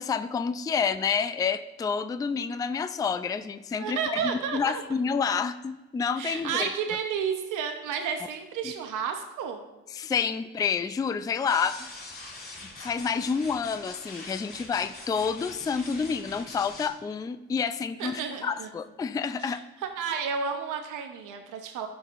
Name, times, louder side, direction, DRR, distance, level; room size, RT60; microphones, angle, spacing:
voice 1, 0.0-6.7 8.6-8.7 9.9-11.9 12.6-19.6, left 6 dB, 15° left, 11 dB, 0.3 m, -29 dB
voice 2, 3.8-4.8 6.2-9.6 18.0-18.7 19.4-21.9, right 6 dB, 85° right, 5 dB, 0.8 m, -31 dB
sound 1, 11.5-16.9, left 2 dB, 30° left, 2.4 m, -43 dB
13.5 x 5.4 x 2.5 m, 1.1 s
cardioid pair, 90°, 30 cm